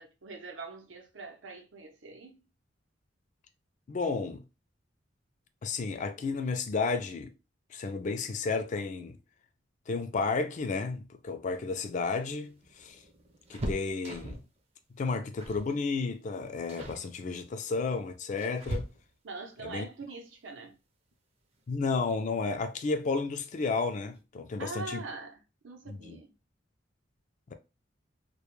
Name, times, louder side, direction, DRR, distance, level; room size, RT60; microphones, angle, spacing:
voice 1, 0.0-2.4 19.2-20.8 24.6-26.3, right 3 dB, 85° right, 0.7 m, -43 dB
voice 2, 3.9-4.4 5.6-7.3 7.7-9.2 9.9-13.0 13.5-14.4 15.0-18.9 19.6-19.8 21.7-25.0 25.9-26.2, left 4 dB, 40° left, 0.3 m, -32 dB
sound 1, 11.9-14.6 15.4-15.7 16.0-16.3 16.7-17.1 17.9-19.4 21.1-21.2 21.6-21.7 22.9-23.3 23.6-23.7 24.0-24.2, right 1 dB, 35° right, 0.5 m, -40 dB
2.2 x 2.1 x 3.0 m
head